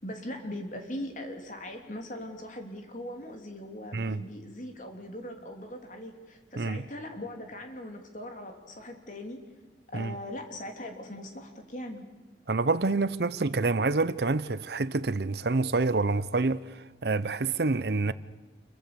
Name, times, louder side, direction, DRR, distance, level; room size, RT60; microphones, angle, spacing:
voice 1, 0.0-9.4 9.9-12.1, left 1 dB, 45° left, 3.2 m, -40 dB
voice 2, 12.5-18.1, right 3 dB, 65° right, 0.7 m, -27 dB
28.0 x 23.0 x 7.0 m
head